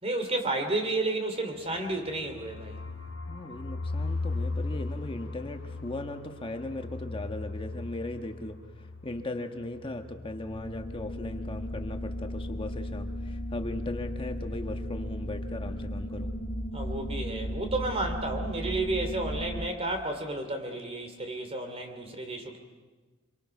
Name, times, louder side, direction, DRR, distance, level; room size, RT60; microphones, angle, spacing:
voice 1, 0.0-2.8 16.7-22.6, right 2 dB, 30° right, 5 dB, 2.9 m, -32 dB
sound 1, 1.7-11.3 11.6-11.7 12.0-12.4, left 3 dB, 85° left, 1.3 m, -38 dB
voice 2, 3.3-16.3 22.1-22.2, left 1 dB, 25° left, 5 dB, 1.3 m, -38 dB
sound 2, 10.4-19.7, equal, 45° left, 1.9 m, -35 dB
26.0 x 23.5 x 5.9 m, 1.3 s
head